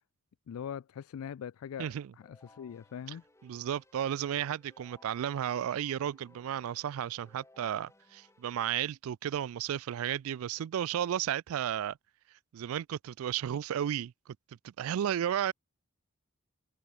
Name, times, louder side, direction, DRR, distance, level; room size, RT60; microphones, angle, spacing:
voice 1, 0.5-3.2, left 8 dB, 80° left, 0.3 m, -42 dB
Keyboard (musical), 2.2-8.8, left 2 dB, 15° left, 1.7 m, -63 dB
voice 2, 3.4-12.0 12.5-14.4 14.6-15.5, right 10 dB, 75° right, 0.3 m, -33 dB
open air
head